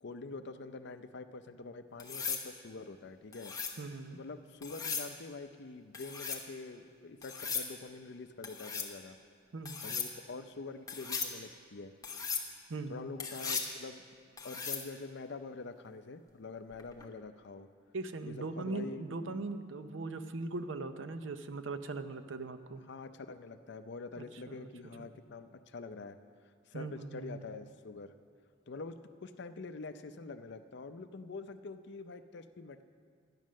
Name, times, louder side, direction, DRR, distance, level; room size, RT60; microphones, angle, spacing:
voice 1, 0.0-3.5 4.1-9.2 9.8-11.9 12.9-14.0 14.4-17.7 18.3-19.1 22.9-26.2 26.7-28.1 28.7-29.0 29.2-32.8, left 3 dB, 60° left, 10 dB, 0.5 m, -45 dB
sound 1, 2.0-2.5 3.3-3.8 4.6-5.1 5.9-6.4 7.2-7.7 8.4-8.9 9.6-10.1 10.9-11.3 12.0-12.5 13.2-13.7 14.4-14.9 16.8-17.1, left 6 dB, 20° left, 0.9 m, -37 dB
voice 2, 3.8-4.2 9.5-9.8 12.7-13.1 17.9-22.8 24.2-24.7 25.0-25.1 26.7-27.4, right 3 dB, 70° right, 10 dB, 0.6 m, -40 dB
11.5 x 9.3 x 6.4 m, 2.1 s
head